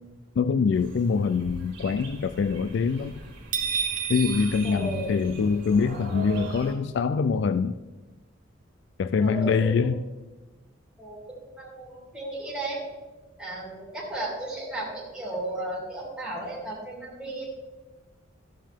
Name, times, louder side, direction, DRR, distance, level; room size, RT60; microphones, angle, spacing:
voice 1, 0.4-3.1 4.1-7.7 9.0-10.0, left 5 dB, 60° left, 11 dB, 0.3 m, -24 dB
sound 1, 0.7-6.7, right 3 dB, 60° right, 2.4 m, -42 dB
sound 2, 3.5-5.7, right 7 dB, 40° right, 1.0 m, -31 dB
voice 2, 4.6-5.2 9.2-9.9 11.0-12.8 13.4-17.4, right 1 dB, 5° right, -6 dB, 3.0 m, -34 dB
13.0 x 7.3 x 3.6 m, 1.2 s
head